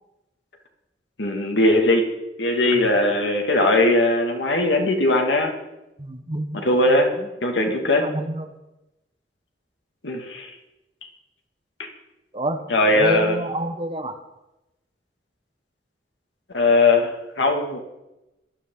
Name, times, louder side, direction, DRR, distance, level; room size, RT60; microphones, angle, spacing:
voice 1, 1.2-2.1 2.4-5.5 6.5-7.1 7.4-8.1 10.0-10.5 11.8-11.9 12.7-13.4 16.5-17.8, left 2 dB, 90° left, 3 dB, 2.3 m, -19 dB
voice 2, 6.0-7.3 7.7-8.6 12.3-12.6 12.9-14.1, right 1 dB, 30° right, 6 dB, 1.2 m, -29 dB
18.0 x 13.0 x 4.0 m, 0.97 s
head